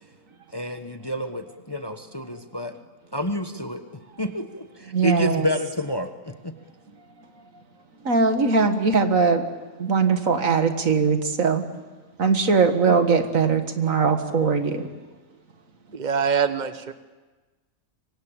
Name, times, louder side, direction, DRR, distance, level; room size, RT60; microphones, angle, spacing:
voice 1, 0.5-2.7 3.1-3.8 4.2-6.6, left 1 dB, 20° left, 7 dB, 1.1 m, -29 dB
voice 2, 4.9-5.5 8.0-9.4 9.8-11.6 12.2-14.9, right 5 dB, 65° right, 7 dB, 2.2 m, -20 dB
voice 3, 15.9-16.9, right 6 dB, 35° right, 10 dB, 1.3 m, -24 dB
25.0 x 24.0 x 8.9 m, 1.3 s
omnidirectional pair, 1.5 m